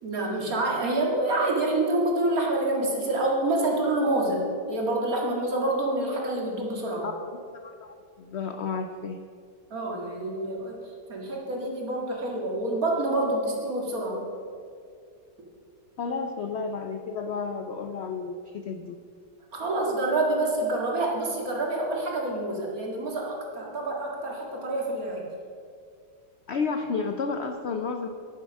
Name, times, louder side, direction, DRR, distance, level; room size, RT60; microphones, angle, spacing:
voice 1, 0.0-4.4 4.7-7.1 9.7-10.8 11.1-14.2 19.5-25.2, right 2 dB, 55° right, -1 dB, 2.3 m, -27 dB
voice 2, 7.0-9.2 16.0-19.0 26.5-28.1, left 5 dB, 85° left, 6 dB, 0.5 m, -32 dB
10.5 x 7.6 x 6.2 m, 2.3 s
omnidirectional pair, 1.8 m